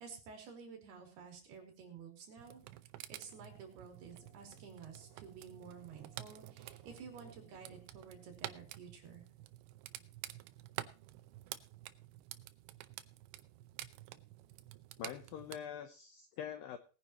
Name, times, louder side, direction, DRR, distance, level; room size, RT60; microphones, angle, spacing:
voice 1, 0.0-2.6 3.1-9.2, right 6 dB, 60° right, 2 dB, 5.0 m, -52 dB
sound 1, 2.4-15.6, right 15 dB, 90° right, 3.0 m, -50 dB
sound 2, 3.1-8.3, left 4 dB, 40° left, 3.7 m, -70 dB
voice 2, 15.0-16.8, left 9 dB, 80° left, 9 dB, 2.1 m, -44 dB
20.5 x 9.9 x 3.0 m, 0.37 s
omnidirectional pair, 5.1 m